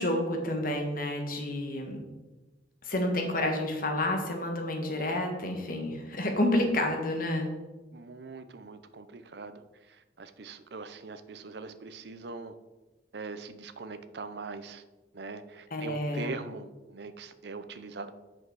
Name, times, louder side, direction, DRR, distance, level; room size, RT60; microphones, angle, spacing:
voice 1, 0.0-2.0 2.8-7.5 15.7-16.3, left 1 dB, 50° left, 3 dB, 1.4 m, -29 dB
voice 2, 7.9-9.6 9.9-12.5 13.1-14.8 15.1-18.1, right 4 dB, 60° right, 11 dB, 0.5 m, -42 dB
7.8 x 6.1 x 4.7 m, 1.2 s
head